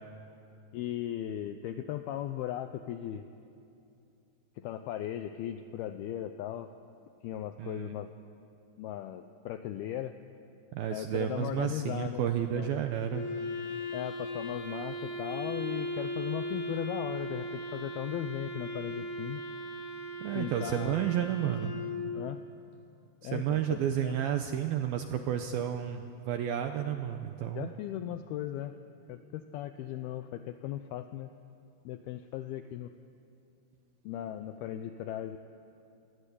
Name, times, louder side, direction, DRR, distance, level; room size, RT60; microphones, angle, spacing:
voice 1, 0.7-3.3 4.6-6.7 7.2-8.1 8.8-10.1 10.9-12.2 12.5-12.7 13.9-19.4 20.4-21.1 22.1-22.4 23.2-24.2 27.5-28.7 29.1-31.3 31.9-32.9 34.0-35.4, left 11 dB, 85° left, 9 dB, 2.2 m, -37 dB
voice 2, 7.6-7.9 10.7-13.3 20.2-21.7 23.2-27.7, right 10 dB, 80° right, 6 dB, 2.2 m, -31 dB
Wind instrument woodwind instrument, 13.1-22.4, equal, 55° left, 5.0 m, -38 dB
27.0 x 20.5 x 8.5 m, 2.7 s
omnidirectional pair, 5.3 m